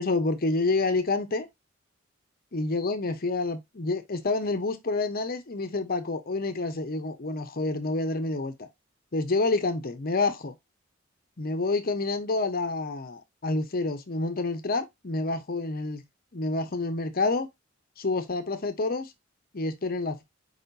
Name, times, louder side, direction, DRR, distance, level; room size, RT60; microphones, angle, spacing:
voice 1, 0.0-1.5 2.5-8.7 9.1-10.5 11.4-16.0 16.3-17.5 18.0-19.1 19.5-20.2, left 3 dB, 50° left, 0.8 m, -28 dB
4.9 x 4.2 x 2.6 m
head